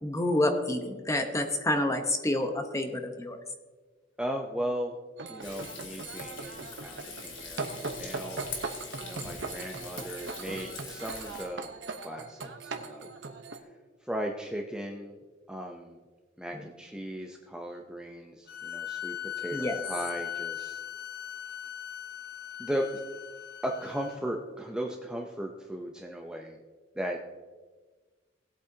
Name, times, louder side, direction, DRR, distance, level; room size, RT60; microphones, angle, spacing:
voice 1, 0.0-3.4 19.5-19.8, left 1 dB, 15° left, 5 dB, 1.0 m, -28 dB
voice 2, 4.2-5.0 5.3-8.4 9.0-13.1 14.0-15.2 15.5-16.0 16.4-20.8 22.6-22.8 23.6-26.6 27.0-27.2, equal, 5° right, 1 dB, 0.6 m, -37 dB
sound 1, 5.2-13.6, right 3 dB, 65° right, 1.0 m, -39 dB
Frying (food), 5.4-11.5, left 4 dB, 75° left, 2.2 m, -43 dB
sound 2, 18.5-24.2, left 10 dB, 55° left, 0.7 m, -39 dB
18.5 x 8.4 x 2.8 m, 1.4 s
head